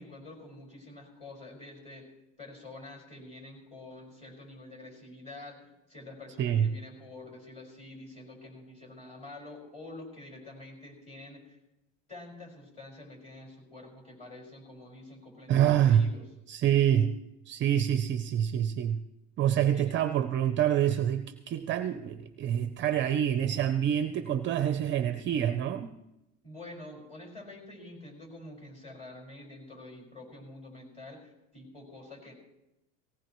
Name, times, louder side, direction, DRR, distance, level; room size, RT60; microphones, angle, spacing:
voice 1, 0.0-2.0 2.4-11.6 12.1-16.3 19.7-19.9 26.4-32.3, left 2 dB, 15° left, -1 dB, 5.2 m, -47 dB
voice 2, 15.5-16.0 16.5-17.1 17.5-19.0 19.4-25.9, right 10 dB, 30° right, 10 dB, 0.6 m, -26 dB
18.5 x 18.0 x 3.1 m, 0.92 s
cardioid pair, 155°, 37 cm